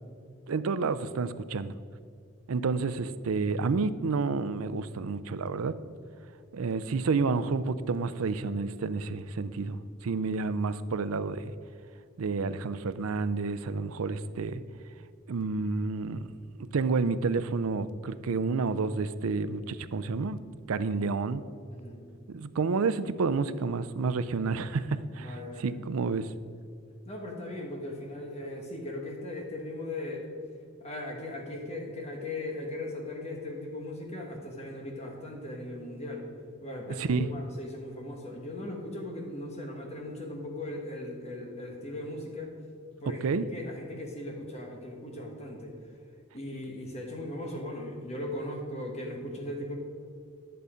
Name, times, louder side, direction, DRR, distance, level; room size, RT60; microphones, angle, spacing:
voice 1, 0.5-1.8 2.5-5.8 6.5-11.5 12.2-14.6 15.3-16.3 16.7-20.4 20.7-21.4 22.3-26.3 37.0-37.3 43.2-43.5, right 4 dB, 90° right, 14 dB, 0.5 m, -30 dB
voice 2, 21.7-22.1 25.2-25.8 27.1-30.3 30.8-36.3 36.6-42.6 43.0-43.2 43.5-45.7 46.3-49.7, left 1 dB, 30° left, 1 dB, 1.4 m, -38 dB
11.0 x 6.8 x 5.0 m, 2.2 s
head